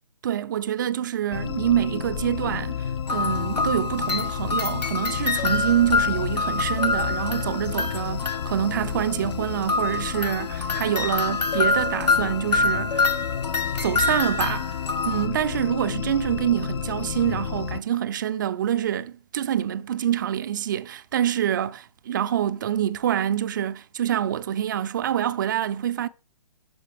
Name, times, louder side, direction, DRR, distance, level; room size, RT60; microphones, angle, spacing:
voice 1, 0.2-13.1 13.8-14.7 15.0-26.1, right 10 dB, 30° right, 0.3 m, -26 dB
sound 1, 1.3-17.8, left 8 dB, 40° left, 0.4 m, -31 dB
sound 2, 3.1-8.7 9.6-15.3, left 3 dB, 90° left, 0.9 m, -26 dB
12.0 x 4.2 x 3.3 m
figure-of-eight pair, 140°, 20 cm